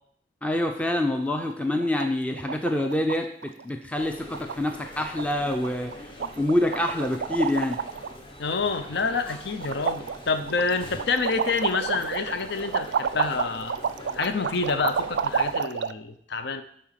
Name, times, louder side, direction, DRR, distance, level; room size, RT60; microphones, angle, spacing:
voice 1, 0.4-6.1 6.4-7.8, left 1 dB, 10° left, 4 dB, 0.5 m, -26 dB
sound 1, 0.7-1.2 1.5-1.6 1.8-2.1 2.3-3.2 3.4-3.6 3.9-4.0 4.3-4.9 5.2-5.3 5.6-6.0 6.2-8.2 8.5-9.3 9.6-15.9, right 6 dB, 75° right, 0.4 m, -30 dB
sound 2, 4.0-15.6, left 1 dB, 30° left, 1.0 m, -44 dB
voice 2, 8.4-13.8 14.1-16.6, left 4 dB, 65° left, 9 dB, 0.6 m, -28 dB
11.0 x 4.2 x 5.7 m, 0.67 s
head